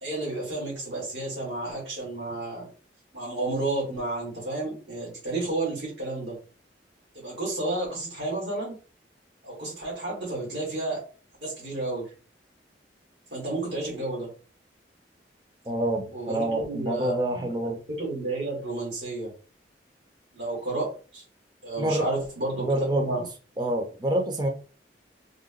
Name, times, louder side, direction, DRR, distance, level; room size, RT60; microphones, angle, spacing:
voice 1, 0.0-2.7 3.1-6.4 7.2-8.8 9.4-11.0 11.4-12.1 13.3-14.3 16.1-19.3 20.3-21.2 21.6-22.7 22.9-23.2, right 2 dB, 85° right, 2.0 m, -31 dB
voice 2, 15.7-17.8 21.8-22.1 22.6-23.0 23.6-24.5, right 1 dB, 25° right, 0.6 m, -27 dB
3.8 x 2.2 x 3.7 m
head